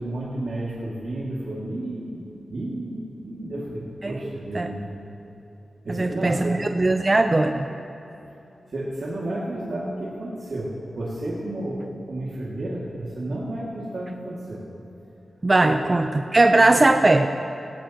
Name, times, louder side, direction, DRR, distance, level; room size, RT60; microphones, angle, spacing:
voice 1, 0.0-2.2 2.5-4.9 5.8-6.6 8.7-10.7 11.0-14.6 15.6-15.9, right 1 dB, 65° right, -7 dB, 2.3 m, -31 dB
voice 2, 5.9-7.7 15.4-17.3, right 2 dB, 35° right, 6 dB, 0.6 m, -19 dB
18.5 x 15.0 x 3.0 m, 2.9 s
cardioid pair, 45°, 0 cm